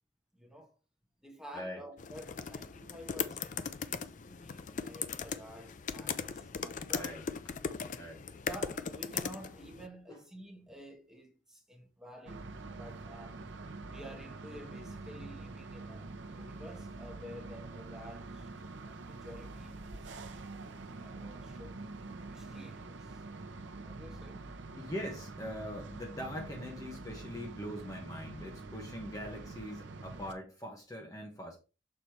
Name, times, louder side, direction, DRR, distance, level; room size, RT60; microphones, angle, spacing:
voice 1, 0.3-0.7 1.2-7.2 8.4-12.5 12.8-13.4 13.8-18.5 18.8-21.8 22.3-23.2 23.8-24.4, equal, 5° right, 1.4 m, -51 dB
sound 1, 2.0-9.9, left 6 dB, 40° left, 0.4 m, -39 dB
voice 2, 6.9-7.2 8.0-8.2 10.1-10.2 24.7-31.6, equal, 15° left, 1.2 m, -42 dB
sound 2, 12.3-30.3, right 3 dB, 70° right, 0.7 m, -45 dB
6.7 x 4.0 x 4.5 m
head